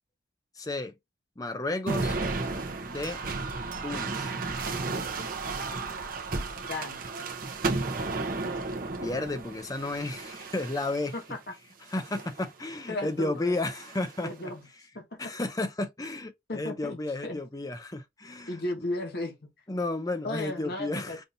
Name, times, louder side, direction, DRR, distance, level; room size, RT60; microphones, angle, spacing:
voice 1, 0.6-0.9 1.4-2.2 2.9-3.2 3.8-4.3 9.0-11.1 11.9-14.5 15.2-18.6 19.7-21.2, left 2 dB, 20° left, 0.5 m, -32 dB
sound 1, 1.9-11.2 11.9-12.5 13.6-14.2, right 3 dB, 45° right, 0.8 m, -33 dB
voice 2, 6.7-7.1 11.1-11.4 12.9-13.6 14.2-14.6 14.9-15.2 16.5-17.4 18.5-19.5 20.2-21.3, left 1 dB, 55° left, 1.2 m, -35 dB
5.4 x 2.6 x 2.6 m
head